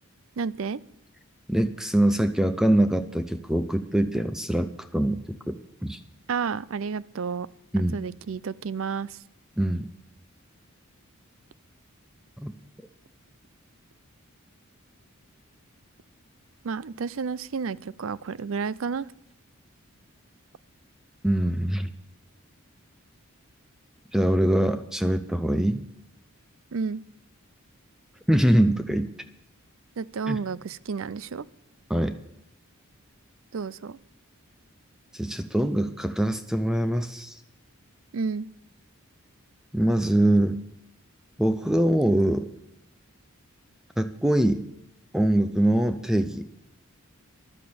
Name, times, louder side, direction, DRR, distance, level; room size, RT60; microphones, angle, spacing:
voice 1, 0.4-0.8 6.3-7.5 7.9-9.2 16.6-19.1 26.7-27.0 30.0-31.4 33.5-34.0 38.1-38.5, right 5 dB, 65° right, 20 dB, 0.5 m, -31 dB
voice 2, 1.5-6.0 7.7-8.0 9.6-9.9 12.4-12.5 21.2-21.9 24.1-25.8 28.3-29.1 30.3-30.4 31.9-32.2 35.1-37.4 39.7-40.6 41.4-42.5 44.0-44.6 45.1-46.5, right 1 dB, ahead, 9 dB, 0.5 m, -23 dB
15.0 x 11.5 x 6.9 m, 0.78 s
head